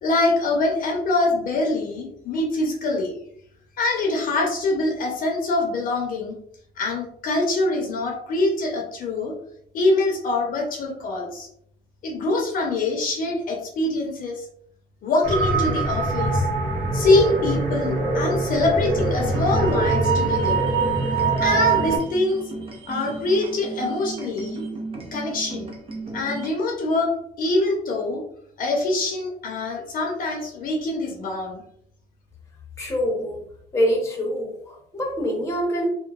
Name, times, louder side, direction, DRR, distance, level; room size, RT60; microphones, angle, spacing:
voice 1, 0.0-3.1 3.8-6.3 6.8-9.3 9.7-11.5 12.0-14.5 15.0-16.5 16.9-20.6 21.4-22.4 22.9-24.6 25.1-25.7 26.1-27.1 27.4-28.2 28.6-31.6, left 2 dB, 55° left, 0 dB, 0.7 m, -24 dB
sound 1, 15.2-22.0, right 3 dB, 55° right, 1.1 m, -22 dB
sound 2, 19.2-26.5, right 3 dB, 35° right, 0.7 m, -35 dB
voice 2, 32.8-33.4 33.7-35.9, equal, 15° left, 0 dB, 0.8 m, -25 dB
3.0 x 2.1 x 2.3 m, 0.67 s
cardioid pair, 110°, 17 cm